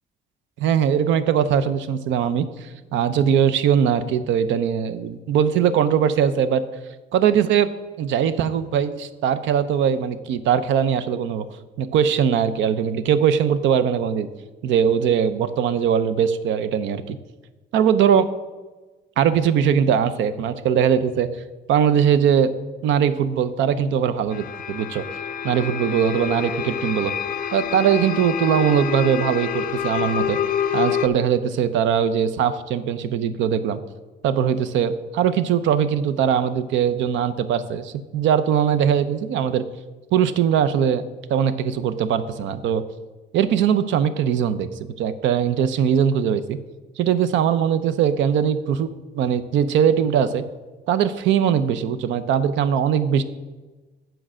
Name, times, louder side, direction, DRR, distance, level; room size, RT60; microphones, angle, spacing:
voice 1, 0.6-6.6 7.1-7.7 8.0-11.5 11.8-14.3 14.6-17.2 17.7-18.3 19.2-21.3 21.7-22.5 22.8-25.0 25.4-27.1 27.5-30.4 30.7-33.8 34.2-39.6 40.1-41.0 41.3-42.8 43.3-46.6 47.0-50.4 50.9-53.2, right 8 dB, 90° right, 13 dB, 0.6 m, -20 dB
sound 1, 24.3-31.1, left 8 dB, 50° left, 0.5 m, -27 dB
8.8 x 4.6 x 6.2 m, 1.2 s
cardioid pair, 155°, 19 cm